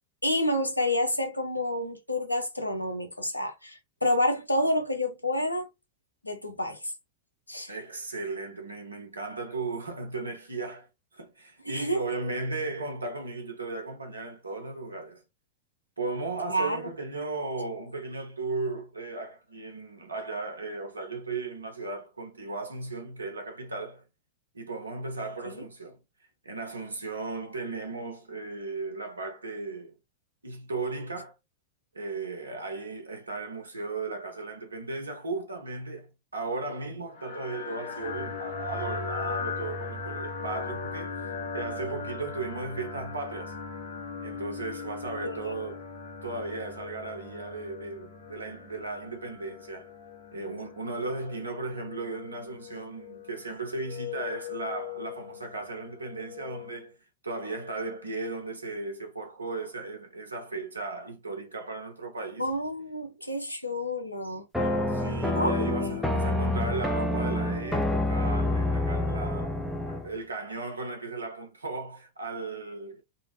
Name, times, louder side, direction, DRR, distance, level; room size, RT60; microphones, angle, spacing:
voice 1, 0.2-5.7 6.2-6.8 7.5-7.7 11.7-12.0 16.5-16.8 25.5-25.6 45.2-45.5 62.4-64.5 65.4-65.5 65.8-66.0, left 1 dB, 85° left, 0.5 m, -29 dB
voice 2, 7.7-10.9 11.1-15.2 16.0-24.0 24.5-26.0 26.4-30.0 30.4-31.3 31.9-41.3 41.5-43.5 44.2-45.8 46.2-49.9 50.3-57.0 57.2-62.5 64.9-73.0, right 3 dB, 80° right, 0.7 m, -36 dB
sound 1, 37.1-56.8, left 5 dB, 50° left, 1.0 m, -39 dB
sound 2, 64.5-70.1, left 1 dB, ahead, 0.5 m, -27 dB
2.7 x 2.0 x 2.8 m
figure-of-eight pair, 90°, 0 cm